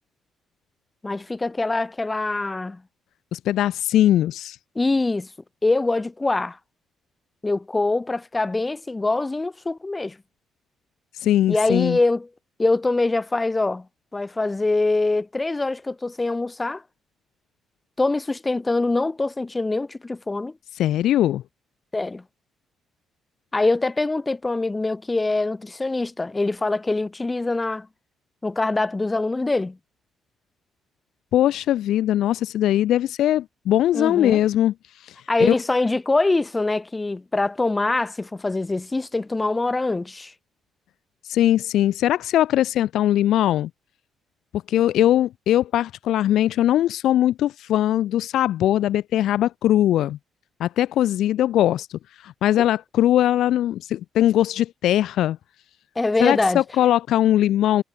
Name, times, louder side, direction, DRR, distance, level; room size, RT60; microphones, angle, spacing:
voice 1, 1.0-2.8 4.8-5.3 5.6-6.6 7.4-10.2 11.5-12.3 12.6-13.9 14.1-16.8 18.0-20.5 21.9-22.2 23.5-27.9 28.4-29.8 33.9-34.4 35.3-40.3 52.6-52.7 56.0-56.6, left 2 dB, 20° left, 1.8 m, -24 dB
voice 2, 3.3-4.6 11.1-12.0 20.7-21.4 31.3-35.5 41.2-43.7 44.7-50.2 50.6-55.4 56.2-57.8, left 12 dB, 80° left, 1.2 m, -20 dB
cardioid pair, 90°, 0 cm